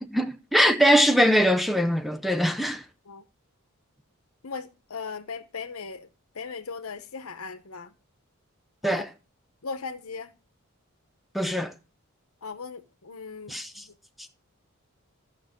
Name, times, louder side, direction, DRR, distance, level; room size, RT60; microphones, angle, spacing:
voice 1, 0.0-2.8 8.8-9.1 11.3-11.7 13.5-13.8, equal, ahead, 0.5 m, -22 dB
voice 2, 4.4-6.1 6.3-7.9 8.8-9.0 9.6-10.3 12.4-13.9, left 5 dB, 75° left, 0.9 m, -38 dB
14.0 x 6.2 x 3.6 m
head